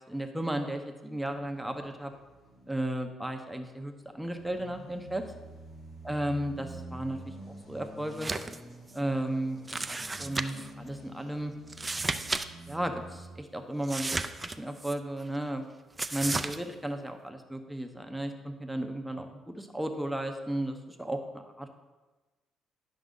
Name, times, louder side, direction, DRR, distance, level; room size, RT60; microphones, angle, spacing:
voice 1, 0.1-2.1 2.7-5.2 6.0-7.3 7.7-8.3 8.9-11.5 12.7-15.6 16.1-21.7, right 1 dB, ahead, 4 dB, 0.9 m, -34 dB
sound 1, 1.3-3.0 3.6-13.4, right 1 dB, 55° left, 2.9 m, -48 dB
sound 2, 8.1-8.6 8.9-9.0 9.7-10.7 11.7-12.5 12.7-12.8 13.8-14.9 16.0-16.6, right 3 dB, 20° right, 0.4 m, -33 dB
10.5 x 6.2 x 3.9 m, 1.2 s
cardioid pair, 95°, 0 cm